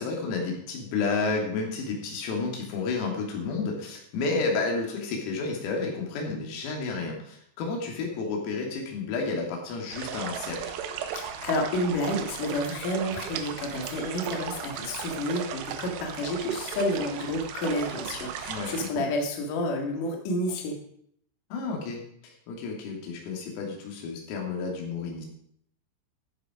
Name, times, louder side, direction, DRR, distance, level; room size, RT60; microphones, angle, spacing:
voice 1, 0.0-10.8 18.5-19.1 21.5-22.0 22.5-25.3, left 4 dB, 85° left, 0 dB, 5.3 m, -31 dB
sound 1, 9.9-18.9, right 8 dB, 75° right, 2.6 m, -36 dB
voice 2, 11.1-20.8, left 1 dB, 50° left, 1 dB, 3.1 m, -30 dB
14.5 x 9.1 x 5.1 m, 0.68 s
omnidirectional pair, 6.0 m